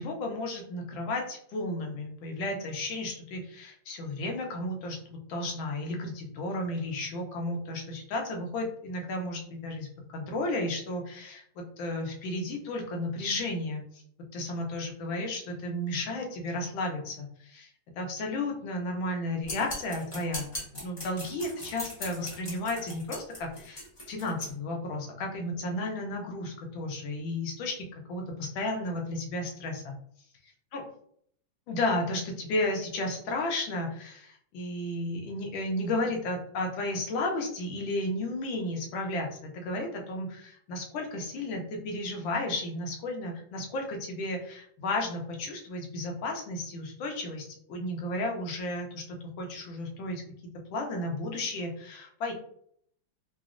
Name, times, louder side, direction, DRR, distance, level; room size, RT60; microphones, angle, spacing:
voice 1, 0.0-14.0 14.3-17.7 18.0-20.5 20.8-29.9 30.7-30.8 31.7-50.2 50.7-52.3, left 2 dB, 80° left, 1 dB, 1.4 m, -33 dB
sound 1, 19.4-24.5, left 1 dB, 30° left, 0.6 m, -40 dB
3.9 x 2.0 x 2.4 m, 0.65 s
omnidirectional pair, 2.1 m